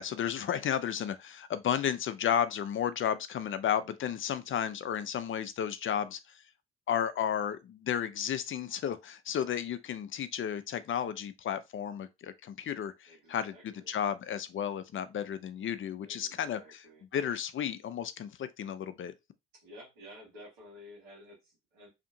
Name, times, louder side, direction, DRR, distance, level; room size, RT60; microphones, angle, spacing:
voice 1, 0.0-6.4 6.9-16.6 17.1-19.1, left 9 dB, 40° left, 0.5 m, -33 dB
voice 2, 13.1-14.0 16.0-17.0 19.5-21.9, left 1 dB, 90° right, 1.4 m, -52 dB
2.8 x 2.5 x 2.6 m
hypercardioid pair, 45°, 30 cm